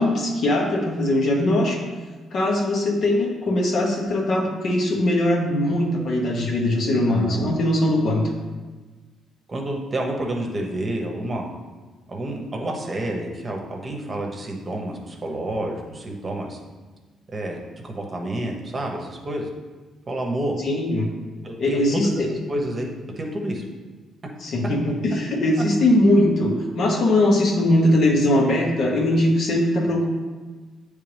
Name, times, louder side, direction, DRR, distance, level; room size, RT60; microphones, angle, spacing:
voice 1, 0.0-1.8 2.3-8.3 20.6-21.1 21.6-22.3 24.4-30.1, left 1 dB, 60° left, 0 dB, 1.1 m, -20 dB
voice 2, 7.1-7.6 9.5-11.5 12.1-16.6 17.3-17.6 17.8-19.5 20.1-20.6 21.4-22.9 23.2-23.6, right 1 dB, 35° right, 1 dB, 1.0 m, -29 dB
8.4 x 3.3 x 3.4 m, 1.3 s
cardioid pair, 90°, 0 cm